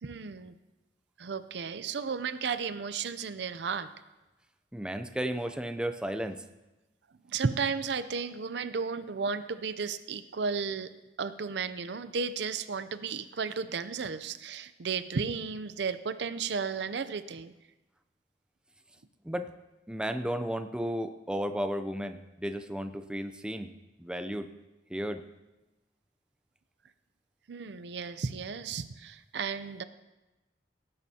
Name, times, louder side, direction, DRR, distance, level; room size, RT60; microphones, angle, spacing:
voice 1, 0.0-0.6 1.2-3.9 7.3-10.9 11.2-17.5 27.5-29.8, right 5 dB, 70° right, 12 dB, 0.6 m, -34 dB
voice 2, 4.7-6.4 19.2-19.5 19.9-23.7 24.0-24.5 24.9-25.2, equal, 5° right, 8 dB, 0.5 m, -33 dB
18.0 x 10.5 x 2.8 m, 1.0 s
head